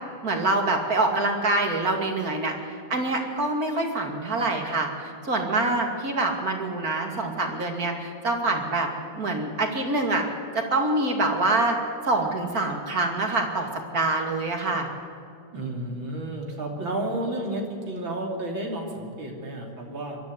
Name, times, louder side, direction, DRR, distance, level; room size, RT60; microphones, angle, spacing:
voice 1, 0.2-2.5 2.9-8.9 9.1-10.2 10.5-11.8 12.0-13.7 13.9-14.9, right 2 dB, 50° right, 3 dB, 2.9 m, -25 dB
voice 2, 15.5-20.2, right 1 dB, 80° right, 1 dB, 3.8 m, -31 dB
22.5 x 13.0 x 9.6 m, 2.4 s
omnidirectional pair, 2.1 m